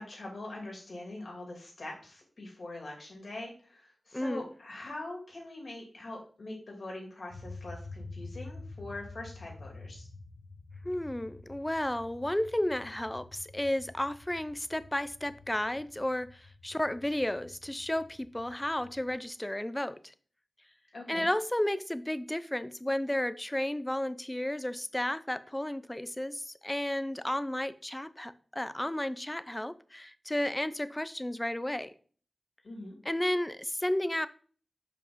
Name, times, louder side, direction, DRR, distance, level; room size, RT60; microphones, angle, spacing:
voice 1, 0.0-10.1 20.9-21.3 32.6-33.0, left 2 dB, 65° left, 2.5 m, -43 dB
voice 2, 4.1-4.5 10.8-20.1 21.1-31.9 33.0-34.3, left 1 dB, 15° left, 0.5 m, -33 dB
sound 1, 7.3-19.1, left 3 dB, 85° left, 1.5 m, -48 dB
5.4 x 5.2 x 3.7 m
cardioid pair, 55°, 0 cm